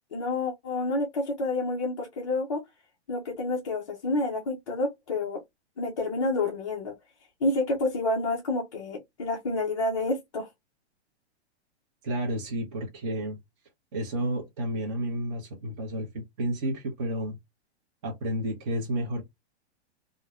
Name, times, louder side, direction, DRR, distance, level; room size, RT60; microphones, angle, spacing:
voice 1, 0.1-2.6 3.1-5.4 5.8-6.9 7.4-10.5, left 2 dB, 30° left, 0.4 m, -29 dB
voice 2, 12.0-13.4 13.9-17.4 18.0-19.2, right 1 dB, 25° right, 0.6 m, -31 dB
2.9 x 2.0 x 2.2 m
hypercardioid pair, 165°, 34 cm